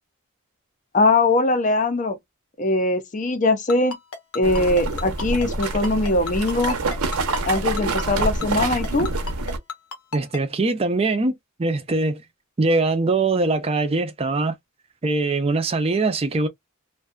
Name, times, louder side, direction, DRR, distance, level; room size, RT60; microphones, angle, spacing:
voice 1, 0.9-2.2 2.6-4.0 4.3-6.8 7.4-9.1, left 2 dB, 35° left, 0.5 m, -21 dB
Ringtone, 3.7-10.4, left 4 dB, 80° left, 0.8 m, -32 dB
sound 1, 4.4-9.6, right 2 dB, 80° right, 0.7 m, -26 dB
voice 2, 10.1-12.2 12.6-14.5 15.0-16.5, right 3 dB, 25° right, 0.4 m, -22 dB
2.5 x 2.2 x 2.3 m
head